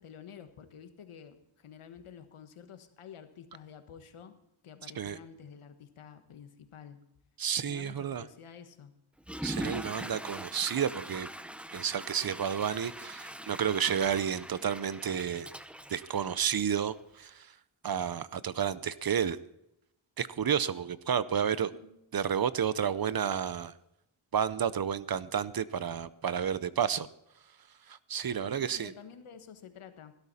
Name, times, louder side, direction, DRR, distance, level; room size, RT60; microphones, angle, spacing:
voice 1, 0.0-4.3 4.6-7.0 7.6-8.9 21.7-22.0 28.5-30.1, left 7 dB, 80° left, 9 dB, 1.5 m, -50 dB
voice 2, 7.4-8.2 9.4-11.3 11.7-15.5 15.9-17.5 17.8-19.4 20.2-21.7 22.1-23.7 24.3-27.1 27.9-28.9, right 8 dB, 45° right, 16 dB, 0.7 m, -31 dB
Water / Toilet flush, 9.2-16.9, equal, ahead, 0.6 m, -42 dB
17.5 x 12.5 x 4.2 m, 0.83 s
wide cardioid pair, 110°, 49 cm